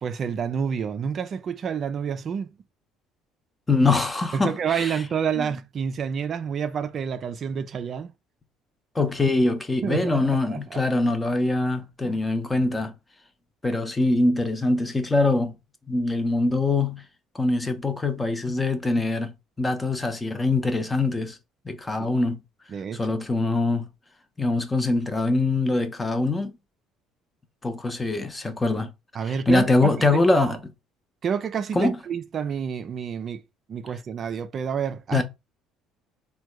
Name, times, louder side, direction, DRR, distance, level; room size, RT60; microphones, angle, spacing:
voice 1, 0.0-2.5 4.3-8.1 9.8-10.8 12.0-12.2 22.0-22.1 22.7-23.2 29.1-30.6 31.2-33.4 33.7-35.2, right 7 dB, 50° right, 0.4 m, -29 dB
voice 2, 3.7-4.9 5.4-5.5 8.9-12.9 13.6-15.6 15.9-17.0 17.3-19.3 19.6-21.4 21.7-22.4 22.9-23.8 24.4-26.5 27.6-28.9 29.5-30.6 31.7-31.9 35.1-35.2, left 2 dB, 20° left, 0.7 m, -23 dB
3.4 x 2.3 x 3.1 m
hypercardioid pair, 65°, 0 cm